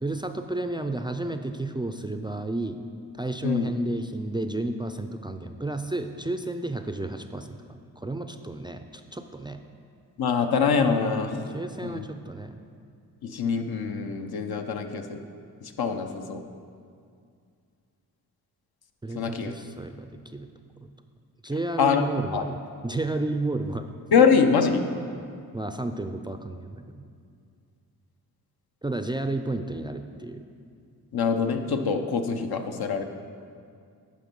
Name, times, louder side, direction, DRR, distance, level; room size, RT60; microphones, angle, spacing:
voice 1, 0.0-2.8 3.1-9.6 11.5-12.6 19.0-20.5 20.8-20.9 21.4-23.9 25.5-27.0 28.8-30.5, right 2 dB, 15° right, 7 dB, 0.4 m, -32 dB
voice 2, 10.2-11.4 11.8-12.0 13.2-15.2 15.6-16.4 19.1-19.5 21.8-22.0 22.3-22.4 24.1-24.8 31.1-33.0, left 6 dB, 75° left, 5 dB, 0.8 m, -24 dB
10.0 x 5.3 x 5.3 m, 2.3 s
cardioid pair, 75°, 38 cm